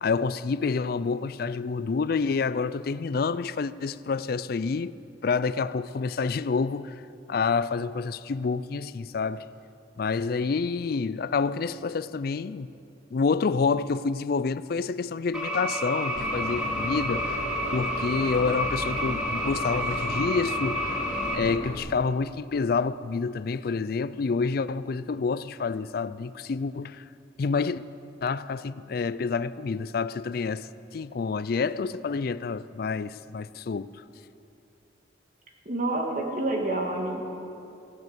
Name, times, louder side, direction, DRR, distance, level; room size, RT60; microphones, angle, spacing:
voice 1, 0.0-5.0 5.2-7.0 7.3-9.5 10.0-12.7 13.1-17.4 17.7-20.9 21.3-27.0 27.4-27.8 28.2-33.9, left 4 dB, 55° left, 0.4 m, -28 dB
sound 1, 15.3-21.3, equal, 5° right, 2.3 m, -30 dB
Boat Water vehicle / Engine, 16.2-21.8, left 1 dB, 35° left, 2.2 m, -36 dB
voice 2, 35.6-37.3, right 2 dB, 45° right, 1.7 m, -28 dB
16.0 x 11.0 x 7.9 m
head